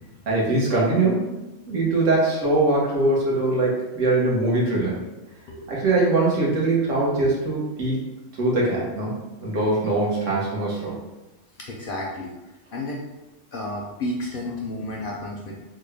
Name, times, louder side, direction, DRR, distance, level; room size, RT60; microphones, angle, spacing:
voice 1, 0.3-1.2 1.7-5.0 5.7-8.0 8.4-10.9, right 2 dB, 75° right, -5 dB, 1.4 m, -22 dB
voice 2, 5.5-6.0 11.6-12.3 12.7-13.0 13.5-15.5, left 1 dB, 60° left, -1 dB, 0.6 m, -32 dB
3.9 x 2.2 x 3.3 m, 1.0 s
omnidirectional pair, 1.3 m